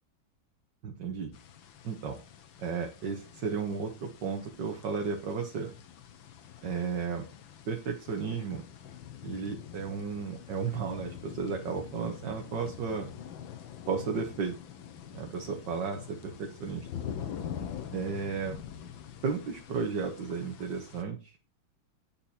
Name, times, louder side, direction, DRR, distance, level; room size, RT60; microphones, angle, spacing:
voice 1, 0.8-1.3 1.8-2.2 2.6-5.7 6.6-7.2 7.7-8.6 9.2-13.1 13.9-14.6 15.1-16.9 17.9-18.6 19.2-21.4, right 5 dB, 65° right, 2 dB, 2.0 m, -34 dB
sound 1, 1.3-21.0, left 9 dB, 80° left, 1.9 m, -45 dB
10.0 x 7.2 x 4.4 m, 0.30 s
omnidirectional pair, 2.1 m